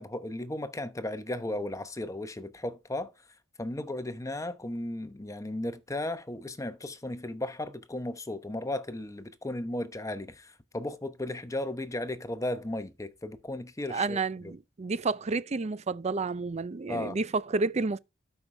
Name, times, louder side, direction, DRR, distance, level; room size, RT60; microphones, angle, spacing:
voice 1, 0.0-3.1 3.6-14.2 16.9-17.2, left 1 dB, 15° left, 0.9 m, -35 dB
voice 2, 13.9-18.0, right 3 dB, 35° right, 0.5 m, -30 dB
12.5 x 5.6 x 3.4 m
head